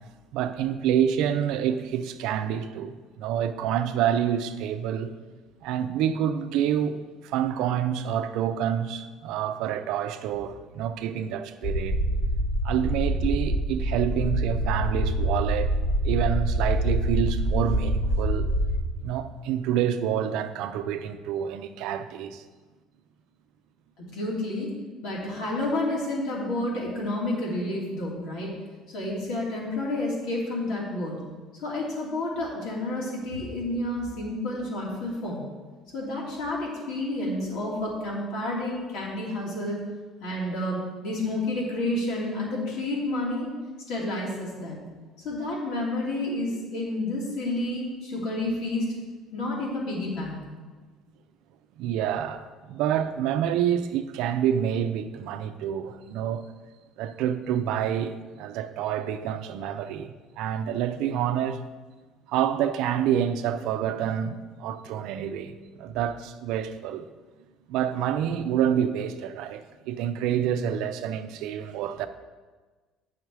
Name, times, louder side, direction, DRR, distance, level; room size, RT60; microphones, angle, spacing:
voice 1, 0.3-5.1 5.6-12.0 12.6-15.8 16.0-18.5 19.0-22.4 51.8-56.4 57.0-61.6 62.3-67.1 67.7-72.1, right 9 dB, 75° right, 0.5 m, -28 dB
sound 1, 11.6-18.9, right 1 dB, 35° left, 1.3 m, -25 dB
voice 2, 24.1-24.7 25.0-28.5 28.9-31.2 31.6-35.4 35.9-39.8 40.2-43.5 43.9-44.8 45.2-48.8 49.3-50.4, left 1 dB, 70° left, 2.9 m, -30 dB
8.8 x 5.7 x 4.7 m
cardioid pair, 155°, 0 cm